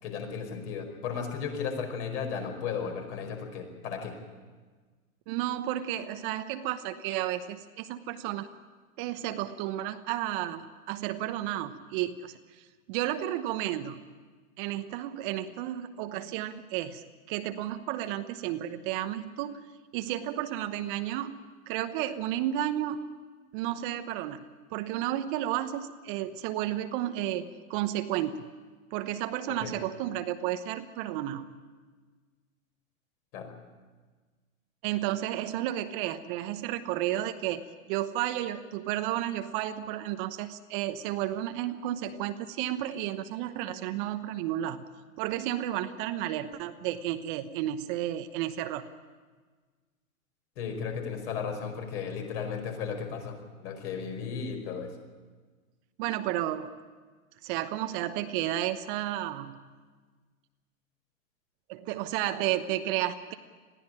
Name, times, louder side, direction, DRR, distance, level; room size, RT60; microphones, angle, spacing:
voice 1, 0.0-4.1 29.6-29.8 33.3-33.6 50.5-54.9, left 6 dB, 50° left, 4 dB, 5.2 m, -35 dB
voice 2, 5.3-8.5 9.0-12.4 12.9-14.0 14.6-21.4 21.7-23.0 23.5-28.5 28.9-31.5 34.8-44.9 45.2-48.9 56.0-56.8 57.4-59.6 61.7-63.3, right 12 dB, 35° right, 9 dB, 1.0 m, -32 dB
21.0 x 15.0 x 10.0 m, 1.4 s
hypercardioid pair, 120°, 43 cm